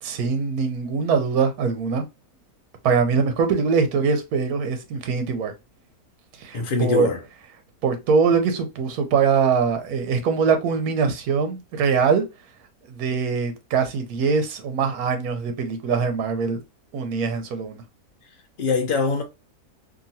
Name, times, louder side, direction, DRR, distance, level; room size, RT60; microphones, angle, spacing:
voice 1, 0.0-2.0 2.8-5.5 6.4-7.1 7.8-12.2 12.9-16.6 16.9-17.8, right 5 dB, 80° right, 1.2 m, -22 dB
voice 2, 6.5-7.2 18.6-19.2, left 4 dB, 55° left, 0.6 m, -22 dB
2.9 x 2.5 x 2.6 m
omnidirectional pair, 1.6 m